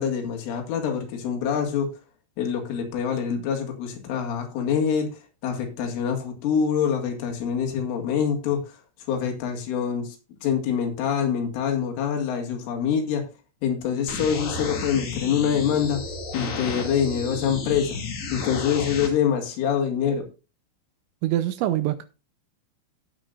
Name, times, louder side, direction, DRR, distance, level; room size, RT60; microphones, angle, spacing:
voice 1, 0.0-1.9 2.4-5.2 5.4-8.6 9.1-10.2 10.4-13.3 13.6-16.0 16.3-18.0 18.3-20.3, left 7 dB, 85° left, 4.4 m, -25 dB
sound 1, 14.1-19.1, left 3 dB, 60° left, 4.3 m, -32 dB
voice 2, 21.2-22.1, right 13 dB, 80° right, 2.8 m, -24 dB
16.0 x 7.7 x 2.5 m
omnidirectional pair, 5.5 m